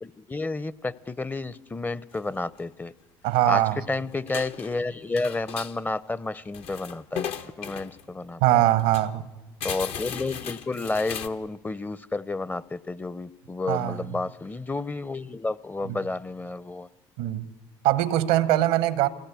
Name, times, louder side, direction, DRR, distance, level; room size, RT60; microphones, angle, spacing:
voice 1, 0.0-2.9 3.5-3.6 3.9-8.4 9.6-16.9, left 3 dB, 15° left, 0.6 m, -31 dB
sound 1, 2.1-2.2 2.5-2.6 3.3-3.8 4.1-4.8 5.2-5.8 6.3-8.0 8.5-8.6 8.8-9.1 9.6-11.3, left 8 dB, 70° left, 1.1 m, -36 dB
voice 2, 3.2-3.8 8.4-9.3 13.7-14.2 15.8-16.0 17.2-17.5 17.8-19.1, right 14 dB, 85° right, 0.9 m, -22 dB
24.0 x 17.0 x 8.3 m
supercardioid pair, 70°, 11 cm